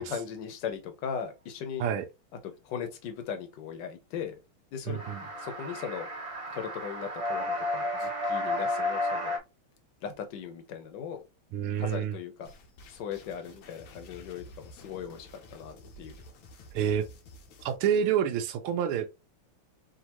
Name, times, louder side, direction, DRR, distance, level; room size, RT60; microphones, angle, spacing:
voice 1, 0.0-1.9 2.4-4.4 4.7-5.0 5.4-6.1 6.5-9.4 10.0-11.2 11.7-12.5 12.9-16.2, left 7 dB, 60° left, 1.4 m, -38 dB
sound 1, 4.9-9.4, left 1 dB, 50° right, 0.4 m, -32 dB
voice 2, 4.9-5.2 11.5-12.1 16.7-17.0 17.6-19.2, right 8 dB, 80° right, 1.5 m, -28 dB
sound 2, 12.5-17.8, left 1 dB, 90° left, 1.9 m, -51 dB
5.1 x 2.8 x 3.0 m
omnidirectional pair, 2.4 m